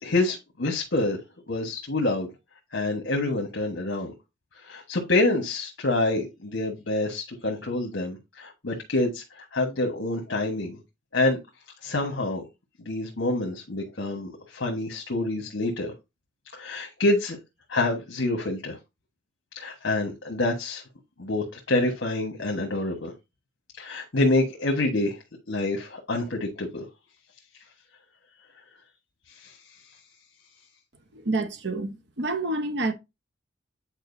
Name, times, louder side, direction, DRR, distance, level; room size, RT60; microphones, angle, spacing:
voice 1, 0.0-1.2 1.5-2.3 2.7-4.1 4.7-10.8 11.1-11.4 11.8-12.4 12.8-15.9 16.5-17.4 17.7-18.8 19.5-20.8 21.2-23.1 23.8-25.2 25.5-26.8 29.4-29.5, left 2 dB, 65° left, 1.4 m, -27 dB
voice 2, 31.1-32.9, right 2 dB, 60° right, 1.0 m, -28 dB
9.0 x 4.6 x 2.7 m
head